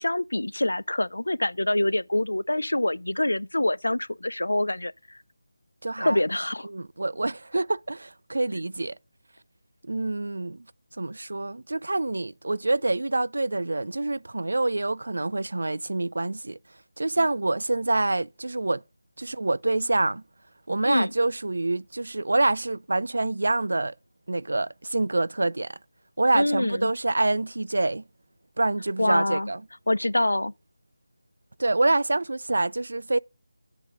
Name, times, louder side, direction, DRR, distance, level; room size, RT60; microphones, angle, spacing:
voice 1, 0.0-5.2 6.0-6.7 20.8-21.1 26.3-26.9 29.0-29.5 29.9-30.5, left 1 dB, 80° left, 0.4 m, -25 dB
voice 2, 5.8-6.2 6.7-9.0 9.8-10.6 11.0-16.6 17.0-18.8 19.2-20.2 20.7-23.9 24.3-25.8 26.2-28.0 28.6-29.6 31.6-33.2, right 2 dB, 70° right, 0.4 m, -26 dB
8.0 x 7.4 x 3.8 m
figure-of-eight pair, 165°, 0 cm